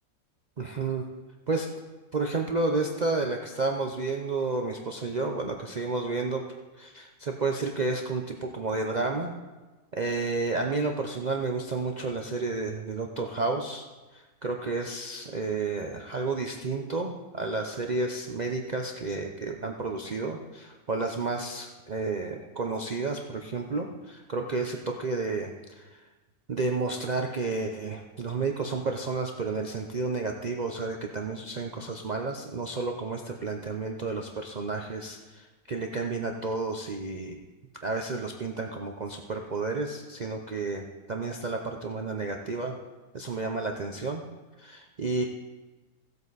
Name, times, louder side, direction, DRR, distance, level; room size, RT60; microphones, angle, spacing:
voice 1, 0.6-1.0 1.5-1.7 2.1-6.5 6.8-9.3 9.9-13.8 14.4-25.9 26.5-37.4 37.8-42.8 43.1-44.2 44.6-45.2, right 3 dB, 70° right, 2 dB, 0.4 m, -31 dB
16.0 x 7.9 x 4.0 m, 1.2 s
omnidirectional pair, 1.8 m